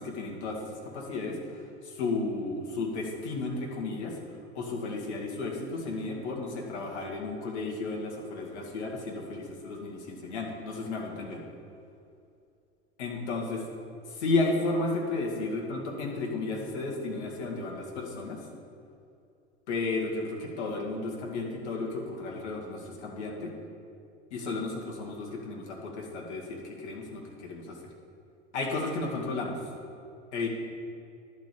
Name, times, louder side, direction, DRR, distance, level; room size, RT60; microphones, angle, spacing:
voice 1, 0.0-1.4 1.8-4.2 4.5-11.4 13.0-13.6 14.1-18.4 19.7-23.5 24.3-27.8 28.5-29.6 30.3-30.5, left 3 dB, 75° left, -1 dB, 2.2 m, -33 dB
11.5 x 5.3 x 8.5 m, 2.5 s
hypercardioid pair, 80°, 34 cm